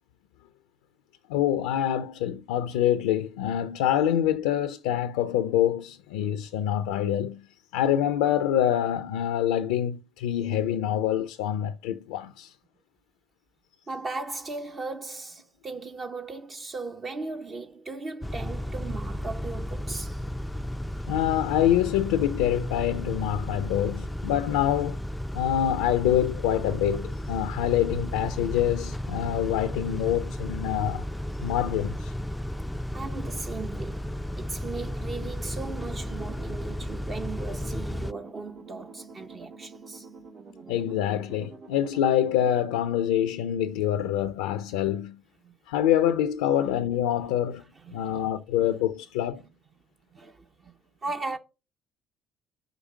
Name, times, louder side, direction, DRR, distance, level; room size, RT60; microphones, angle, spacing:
voice 1, 1.3-7.5 7.7-12.5 21.1-25.0 25.3-31.0 31.4-32.1 40.7-45.2 45.7-47.6 47.9-49.4, left 11 dB, 80° left, 0.4 m, -26 dB
voice 2, 13.9-20.3 32.9-40.1 45.4-45.5 47.8-48.2 50.1-50.7 51.0-51.4, right 3 dB, 40° right, 0.8 m, -37 dB
Car / Idling / Accelerating revving vroom, 18.2-38.1, equal, 5° left, 0.3 m, -34 dB
sound 1, 35.5-42.6, right 4 dB, 65° right, 2.1 m, -47 dB
5.1 x 5.0 x 6.2 m
hypercardioid pair, 60°, 0 cm